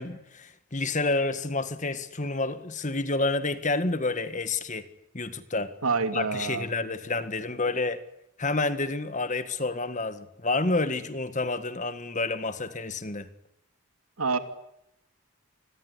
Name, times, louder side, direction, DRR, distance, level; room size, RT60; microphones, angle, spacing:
voice 1, 0.0-4.9 5.1-5.7 6.1-8.0 8.4-13.3, left 3 dB, 35° left, 1.7 m, -29 dB
voice 2, 5.8-6.7 14.2-14.4, right 4 dB, 80° right, 2.7 m, -27 dB
28.5 x 21.5 x 9.9 m
head